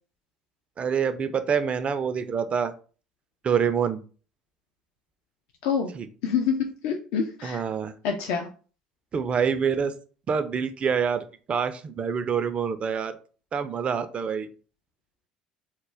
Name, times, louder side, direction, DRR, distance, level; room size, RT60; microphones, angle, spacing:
voice 1, 0.8-2.7 3.4-4.0 5.9-6.1 7.4-7.9 9.1-9.9 10.3-13.2 13.5-14.5, right 6 dB, 35° right, 10 dB, 0.3 m, -26 dB
voice 2, 6.2-7.6 8.0-8.5, left 6 dB, 65° left, 2 dB, 0.3 m, -26 dB
2.2 x 2.1 x 3.3 m, 0.38 s
figure-of-eight pair, 60°, 3 cm